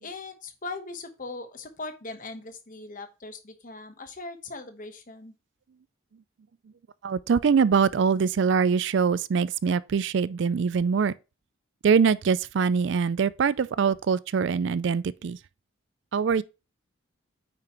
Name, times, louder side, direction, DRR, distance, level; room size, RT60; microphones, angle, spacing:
voice 1, 0.0-5.3, left 3 dB, 40° left, 1.1 m, -40 dB
voice 2, 7.0-11.1 11.8-15.4 16.1-16.4, right 6 dB, 60° right, 0.4 m, -23 dB
8.9 x 5.8 x 3.0 m
head